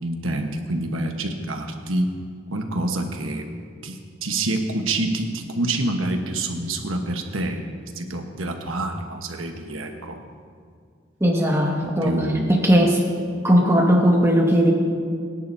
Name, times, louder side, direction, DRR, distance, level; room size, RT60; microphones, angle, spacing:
voice 1, 0.0-2.1 2.5-3.5 3.8-7.7 7.9-10.2 11.8-12.5, right 2 dB, 90° right, 4 dB, 1.3 m, -27 dB
voice 2, 11.2-12.2 12.5-13.0 13.4-14.7, equal, 15° right, -2 dB, 1.8 m, -18 dB
22.5 x 10.5 x 2.8 m, 2.2 s
head